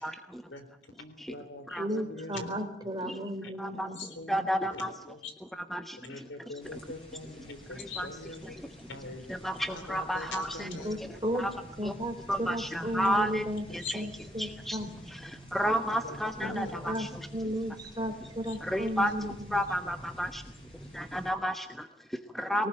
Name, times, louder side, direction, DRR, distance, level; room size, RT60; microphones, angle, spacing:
voice 1, 0.0-0.4 1.2-1.3 1.7-1.9 3.1-3.2 3.6-3.9 4.3-4.9 5.5-6.3 6.7-6.8 7.8-8.1 8.5-8.6 9.3-10.7 11.3-11.5 11.8-11.9 12.3-13.4 13.7-14.0 14.4-14.8 15.1-17.3 18.6-19.1 19.5-20.4 20.9-22.7, equal, ahead, 8 dB, 0.9 m, -32 dB
voice 2, 1.0-2.6 4.0-4.4 4.7-5.3 6.0-8.6 8.9-9.2 9.7-11.0 11.5-11.6 12.0-12.1 13.7-13.9 15.6-16.2 16.4-16.9 18.0-18.1 18.5-19.1, left 3 dB, 90° left, 9 dB, 3.9 m, -43 dB
voice 3, 1.8-4.0 4.3-4.5 10.6-11.5 11.8-13.6 13.9-15.1 16.4-17.1 17.3-19.6 22.6-22.7, equal, 20° right, 4 dB, 3.4 m, -34 dB
sound 1, 6.6-21.3, equal, 30° left, 7.3 m, -49 dB
23.0 x 19.0 x 8.8 m, 0.68 s
head